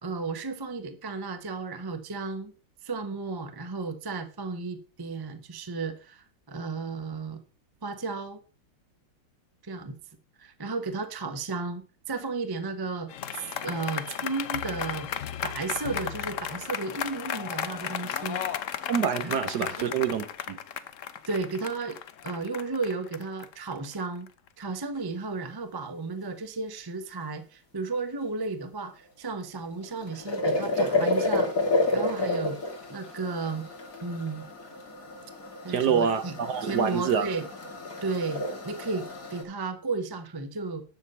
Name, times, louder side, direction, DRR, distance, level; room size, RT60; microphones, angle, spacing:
voice 1, 0.0-2.5 2.8-7.4 7.8-8.4 9.6-10.0 10.4-15.1 15.4-18.4 19.2-19.9 21.3-22.0 22.2-24.3 24.6-31.5 31.9-32.6 32.9-33.7 34.0-34.5 35.6-36.3 36.6-37.5 38.0-40.8, right 3 dB, 25° right, 0.5 m, -34 dB
sound 1, 13.1-24.5, left 9 dB, 80° left, 0.7 m, -34 dB
voice 2, 18.9-20.6 35.7-37.3, right 7 dB, 60° right, 1.2 m, -26 dB
sound 2, 29.6-39.4, left 2 dB, 40° left, 2.8 m, -30 dB
10.5 x 6.9 x 5.5 m
omnidirectional pair, 2.3 m